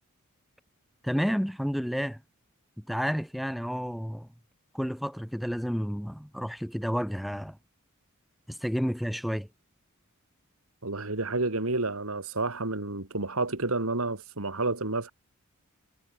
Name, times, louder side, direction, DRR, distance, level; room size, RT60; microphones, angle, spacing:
voice 1, 1.0-2.2 2.8-4.3 4.7-7.6 8.5-9.5, equal, ahead, 1.2 m, -30 dB
voice 2, 10.8-15.1, right 2 dB, 75° right, 2.5 m, -30 dB
head